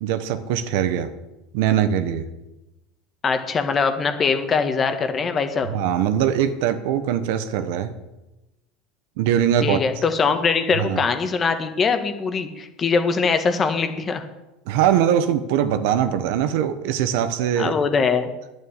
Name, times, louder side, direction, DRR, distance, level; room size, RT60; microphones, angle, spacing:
voice 1, 0.0-1.1 1.5-2.3 5.7-7.9 9.2-9.8 10.8-11.0 14.7-17.8, right 9 dB, 75° right, 11 dB, 1.2 m, -21 dB
voice 2, 3.2-5.7 9.6-14.2 17.5-18.3, left 5 dB, 30° left, 8 dB, 1.6 m, -22 dB
9.9 x 8.9 x 8.9 m, 1.0 s
supercardioid pair, 110°, 0 cm